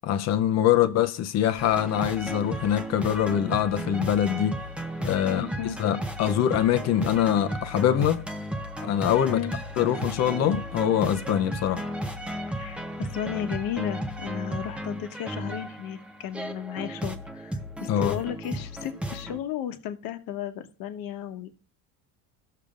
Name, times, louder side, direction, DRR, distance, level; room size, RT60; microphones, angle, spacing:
voice 1, 0.0-4.5 5.0-5.5 5.8-8.3 8.8-9.4 9.8-11.9 17.9-18.2, left 10 dB, 40° left, 0.6 m, -24 dB
sound 1, 1.6-19.4, right 1 dB, 5° right, 0.6 m, -34 dB
voice 2, 5.2-5.8 9.3-9.5 12.5-21.5, left 10 dB, 55° left, 1.1 m, -34 dB
17.5 x 6.7 x 2.5 m
cardioid pair, 150°, 42 cm